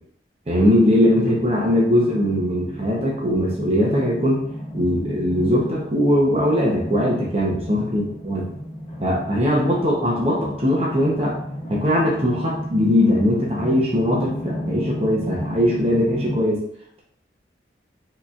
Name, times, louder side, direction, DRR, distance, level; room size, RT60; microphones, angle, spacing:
voice 1, 0.5-4.5 4.7-8.5 9.0-11.4 11.7-16.6, equal, 35° right, -3 dB, 0.7 m, -20 dB
sound 1, 0.6-16.4, equal, 30° left, 0.6 m, -33 dB
4.6 x 2.8 x 2.4 m, 0.66 s
head